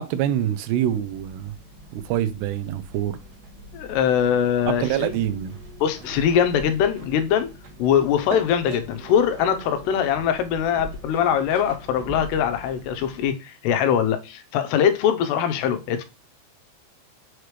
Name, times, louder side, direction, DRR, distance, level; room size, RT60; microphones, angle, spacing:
voice 1, 0.0-1.5 1.9-3.2 4.7-5.6, right 11 dB, 90° right, 2.8 m, -25 dB
sound 1, 0.8-13.3, right 2 dB, 70° right, 3.9 m, -41 dB
voice 2, 3.7-5.1 5.8-7.5 7.8-16.0, left 8 dB, 85° left, 2.9 m, -22 dB
7.4 x 4.9 x 3.2 m
omnidirectional pair, 4.7 m